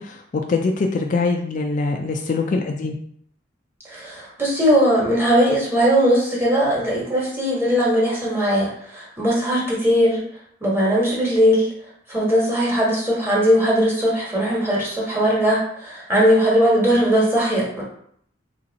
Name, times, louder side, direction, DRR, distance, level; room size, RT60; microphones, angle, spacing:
voice 1, 0.0-3.0, left 3 dB, 45° left, 3 dB, 0.3 m, -23 dB
voice 2, 3.9-10.2 10.6-11.7 12.1-17.8, equal, 15° right, -5 dB, 1.2 m, -19 dB
3.1 x 2.6 x 3.9 m, 0.65 s
head